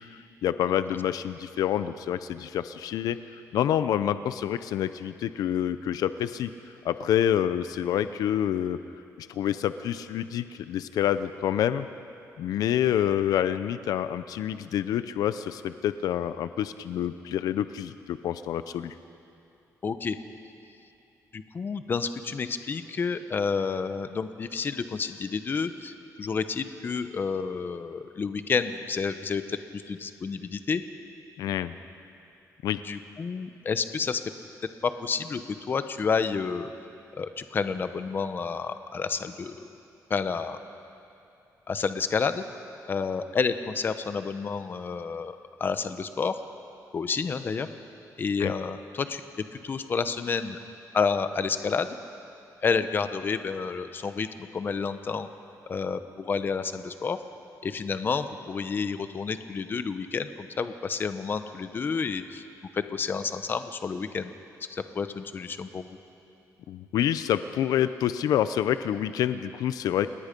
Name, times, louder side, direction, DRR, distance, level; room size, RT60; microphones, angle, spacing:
voice 1, 0.4-6.5 6.8-8.8 9.2-11.9 12.4-18.9 31.4-31.7 32.6-32.8 48.4-48.5 66.7-70.1, left 10 dB, 85° left, 12 dB, 0.6 m, -27 dB
voice 2, 19.8-20.2 21.3-30.8 32.8-34.2 35.0-35.4 35.7-36.7 37.2-39.6 40.1-40.6 41.7-42.4 42.9-46.3 46.9-47.7 48.2-49.2 49.6-50.6 50.9-51.9 52.6-54.3 54.5-55.3 55.7-57.2 57.6-62.4 62.7-64.3 64.7-66.0, left 5 dB, 35° left, 10 dB, 0.9 m, -30 dB
29.5 x 18.5 x 5.3 m, 2.7 s
cardioid pair, 150°, 6 cm